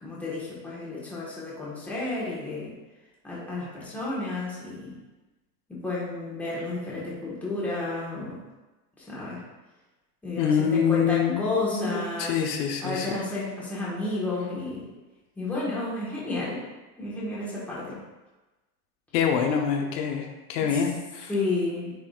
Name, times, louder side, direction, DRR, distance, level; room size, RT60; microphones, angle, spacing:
voice 1, 0.0-2.7 3.2-5.0 5.7-8.4 9.0-9.4 10.2-12.4 12.8-14.9 15.4-16.6 17.0-18.0 20.7-20.8 21.3-21.9, left 2 dB, 5° left, -8 dB, 1.4 m, -31 dB
voice 2, 10.4-13.1 19.1-21.3, left 7 dB, 75° left, 2 dB, 1.2 m, -26 dB
9.6 x 4.8 x 2.5 m, 1.1 s
supercardioid pair, 165°, 49 cm